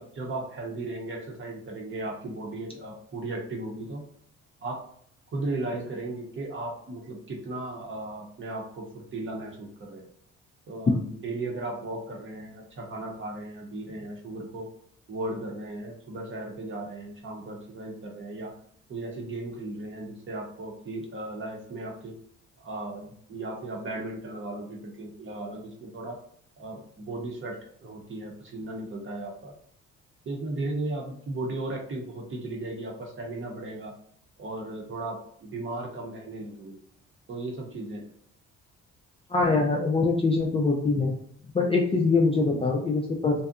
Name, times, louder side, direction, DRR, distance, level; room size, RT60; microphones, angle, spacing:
voice 1, 0.0-4.0 4.6-4.8 5.3-10.0 10.7-14.7 15.1-18.5 18.9-22.1 22.6-26.2 26.6-29.5 30.3-33.9 34.4-36.8 37.3-38.0, right 2 dB, 40° right, 0 dB, 0.7 m, -36 dB
voice 2, 39.3-41.1 41.5-43.4, left 3 dB, 20° left, 0 dB, 0.3 m, -23 dB
2.6 x 2.1 x 2.4 m, 0.64 s
cardioid pair, 90°, 30 cm